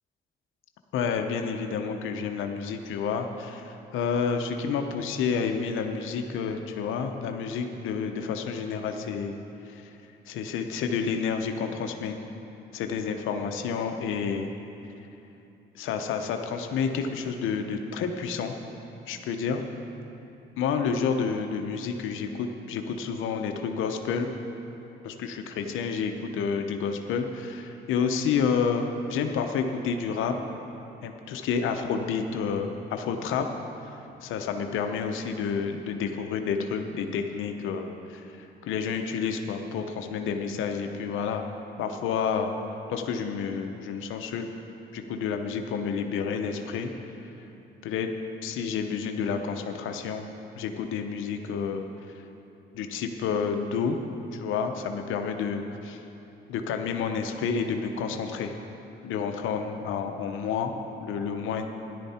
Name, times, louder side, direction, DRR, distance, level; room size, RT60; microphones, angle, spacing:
voice 1, 0.9-9.3 9.7-9.8 10.3-12.2 12.7-14.5 15.7-18.6 19.1-19.6 20.6-24.3 25.0-30.4 31.0-33.5 34.2-41.5 41.8-42.5 42.9-44.5 44.9-47.1 47.8-48.1 48.4-50.3 50.6-51.9 52.7-54.0 54.3-56.0 56.5-58.5 59.0-60.7 61.0-61.7, left 6 dB, 85° left, 5 dB, 0.8 m, -29 dB
13.5 x 11.0 x 4.3 m, 2.9 s
cardioid pair, 90°, 20 cm